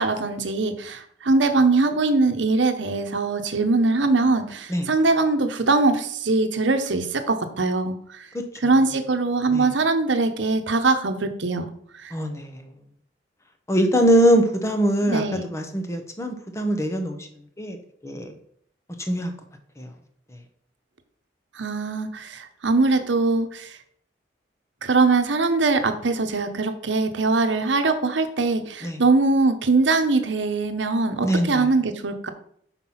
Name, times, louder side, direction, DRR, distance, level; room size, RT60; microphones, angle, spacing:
voice 1, 0.0-8.3 8.6-12.1 15.1-15.5 21.5-23.8 24.8-32.3, right 3 dB, 80° right, 8 dB, 0.8 m, -22 dB
voice 2, 12.1-12.6 13.7-17.2 17.6-17.8 18.0-18.3 19.1-19.3 19.8-19.9 28.8-29.0 31.2-31.6, equal, 15° left, 5 dB, 0.8 m, -22 dB
5.9 x 4.5 x 5.5 m, 0.66 s
head